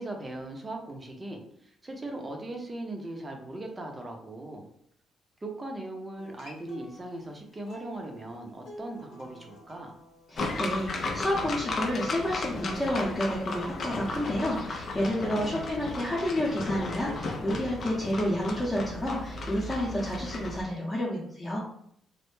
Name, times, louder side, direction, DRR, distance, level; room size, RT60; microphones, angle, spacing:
voice 1, 0.0-4.7 5.4-9.9 15.0-15.7, right 2 dB, 25° right, 2 dB, 0.6 m, -39 dB
Acoustic guitar, 6.2-11.4 12.9-14.2, equal, 70° left, 0.9 m, -50 dB
voice 2, 10.3-21.6, equal, 20° left, -6 dB, 0.7 m, -30 dB
sound 1, 10.4-20.6, left 3 dB, 50° left, 0.4 m, -35 dB
2.1 x 2.0 x 3.0 m, 0.69 s
cardioid pair, 90°, 0 cm